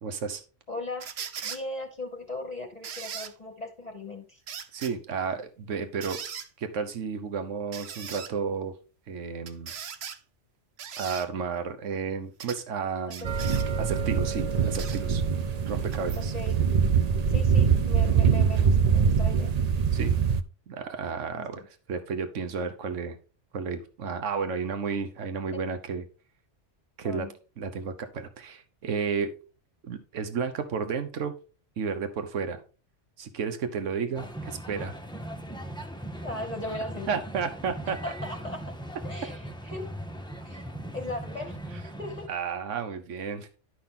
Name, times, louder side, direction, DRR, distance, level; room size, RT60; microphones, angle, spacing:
voice 1, 0.0-0.4 4.7-6.2 6.6-8.7 9.1-9.7 11.0-13.4 13.8-15.2 15.7-16.3 19.9-20.1 20.7-23.2 23.5-26.0 27.0-27.3 27.6-29.3 29.8-31.3 31.8-32.6 33.2-34.9 37.1-38.0 42.3-43.6, right 6 dB, 85° right, 8 dB, 1.3 m, -32 dB
voice 2, 0.7-1.1 1.4-4.4 13.1-13.2 16.2-16.6 17.3-19.5 21.3-21.5 27.0-27.3 36.2-37.1 38.0-38.6 39.0-39.9 40.4-40.7 40.9-41.6 42.0-42.3, left 2 dB, 35° left, 1 dB, 1.1 m, -38 dB
sound 1, 1.0-1.6 2.8-3.3 4.5-4.9 6.0-6.5 7.7-8.3 9.5-10.2 10.8-11.3 12.4-12.6 13.1-13.7 14.7-15.0 15.9-16.0, right 7 dB, 65° right, 1.0 m, -38 dB
sound 2, 13.2-20.4, right 6 dB, 45° right, 0.5 m, -24 dB
sound 3, 34.1-42.3, right 1 dB, 5° left, 0.7 m, -39 dB
11.0 x 5.9 x 3.7 m, 0.35 s
omnidirectional pair, 1.2 m